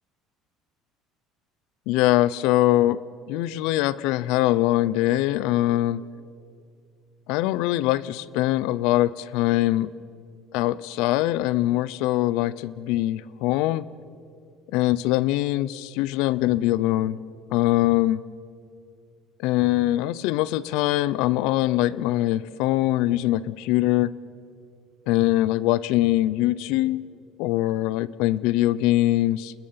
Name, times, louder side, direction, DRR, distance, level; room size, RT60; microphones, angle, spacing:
voice 1, 1.9-3.0 3.3-6.0 7.3-9.9 10.5-13.9 14.7-17.2 17.5-18.2 19.4-24.1 25.1-27.1 27.4-29.5, left 16 dB, 75° left, 19 dB, 0.6 m, -22 dB
29.5 x 20.5 x 5.7 m, 2.3 s
cardioid pair, 150°, 0 cm